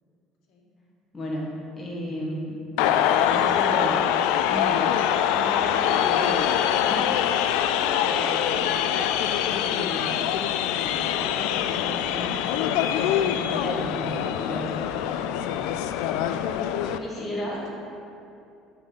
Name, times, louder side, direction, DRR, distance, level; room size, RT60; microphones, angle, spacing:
voice 1, 1.1-2.6 3.2-4.1 4.5-4.9 5.3-6.5 6.8-7.1 7.8-8.7 9.5-10.3 10.8-12.6 13.0-15.2 16.8-17.5, equal, 15° left, -5 dB, 1.6 m, -34 dB
sound 1, 2.8-17.0, left 10 dB, 85° left, 0.3 m, -24 dB
voice 2, 16.4-17.7, left 2 dB, 60° left, -2 dB, 1.5 m, -43 dB
9.8 x 4.1 x 5.1 m, 2.6 s
cardioid pair, 165°, 0 cm